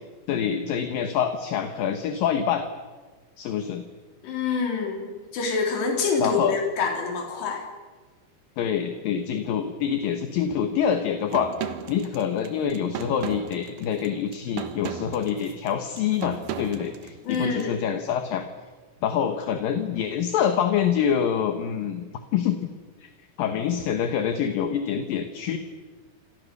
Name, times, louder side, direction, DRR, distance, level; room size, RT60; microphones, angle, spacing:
voice 1, 0.3-2.7 3.4-3.8 6.2-6.6 8.6-18.5 19.0-22.0 22.3-22.6 23.0-23.1 23.4-25.6, left 8 dB, 65° left, 7 dB, 2.8 m, -26 dB
voice 2, 4.2-7.6 17.3-17.8, left 4 dB, 90° left, 1 dB, 5.6 m, -26 dB
sound 1, 11.3-17.7, right 9 dB, 65° right, 3.1 m, -36 dB
28.0 x 27.5 x 6.8 m, 1.4 s
omnidirectional pair, 4.7 m